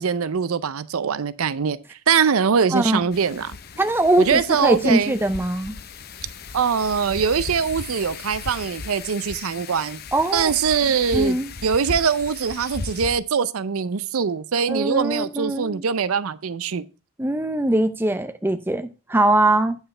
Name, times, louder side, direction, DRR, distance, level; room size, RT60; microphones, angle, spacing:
voice 1, 0.0-3.6 4.2-5.2 6.5-10.0 10.3-11.4 11.6-16.9, right 6 dB, 85° right, 0.5 m, -22 dB
voice 2, 2.7-3.0 3.8-5.7 10.1-10.5 11.1-11.5 14.7-15.8 17.2-19.8, right 1 dB, 10° right, 0.5 m, -21 dB
Wind, 3.1-13.2, left 4 dB, 45° left, 0.6 m, -36 dB
9.0 x 5.6 x 4.3 m
head